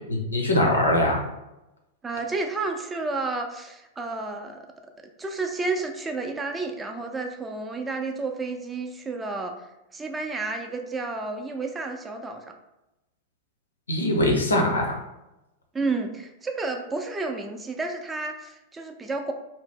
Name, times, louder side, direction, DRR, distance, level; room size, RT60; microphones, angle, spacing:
voice 1, 0.1-1.2 13.9-14.9, left 1 dB, 85° left, 1 dB, 0.6 m, -22 dB
voice 2, 2.0-4.7 5.2-9.5 9.9-12.5 15.7-19.3, right 3 dB, 15° right, 4 dB, 0.4 m, -31 dB
2.7 x 2.0 x 3.4 m, 0.94 s
figure-of-eight pair, 95°, 0 cm